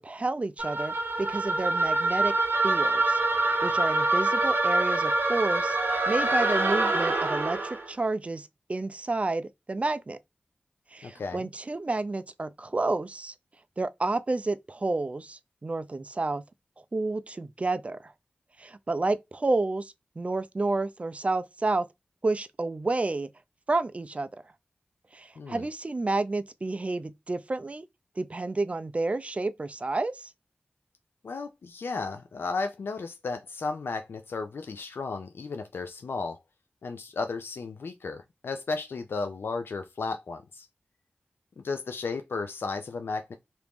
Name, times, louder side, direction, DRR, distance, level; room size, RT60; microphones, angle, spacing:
voice 1, 0.0-2.3 2.6-3.2 3.6-5.8 6.1-10.2 10.9-13.3 13.8-16.4 16.9-18.1 18.6-21.9 22.2-23.3 23.7-24.3 25.1-27.9 28.2-30.3, right 2 dB, 35° right, 0.4 m, -30 dB
sound 1, 0.6-7.8, right 2 dB, 70° right, 0.8 m, -25 dB
voice 2, 11.0-11.5 25.4-25.7 31.2-36.4 36.8-40.7 41.6-43.3, left 4 dB, 85° left, 0.4 m, -34 dB
2.9 x 2.6 x 3.4 m
wide cardioid pair, 65°, 4 cm